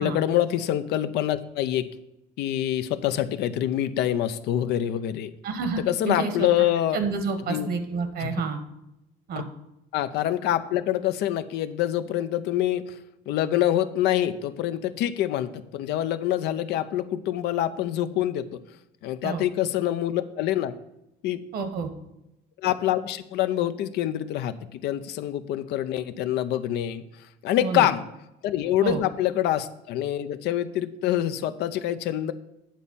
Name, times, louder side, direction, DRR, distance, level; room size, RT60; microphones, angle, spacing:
voice 1, 0.0-1.9 2.4-5.3 5.8-7.0 7.5-7.7 8.2-8.4 9.9-12.9 13.3-18.5 19.0-20.7 21.2-21.4 22.6-27.0 27.4-28.0 28.4-32.3, left 12 dB, 85° left, 12 dB, 0.6 m, -26 dB
voice 2, 5.4-6.5 6.9-8.6 9.3-9.5 19.2-19.4 21.5-21.9 27.6-27.9 28.8-29.0, right 5 dB, 65° right, 8 dB, 1.2 m, -29 dB
9.1 x 4.2 x 6.9 m, 0.87 s
cardioid pair, 110°, 17 cm